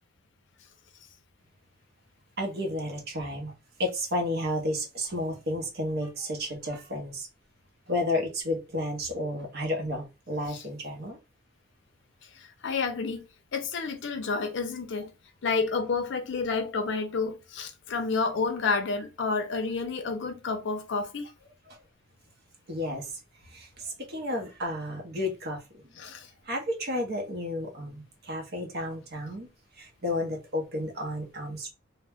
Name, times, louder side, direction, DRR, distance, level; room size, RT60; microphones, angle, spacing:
voice 1, 2.4-3.5 3.8-7.3 7.9-11.2 21.7-21.8 22.7-23.1 23.5-25.6 26.4-29.5 29.8-31.7, left 1 dB, 50° right, 0.7 m, -32 dB
voice 2, 12.2-13.2 13.5-15.1 15.4-21.3 26.0-26.3, left 4 dB, 60° left, 0.5 m, -30 dB
2.1 x 2.0 x 3.4 m
head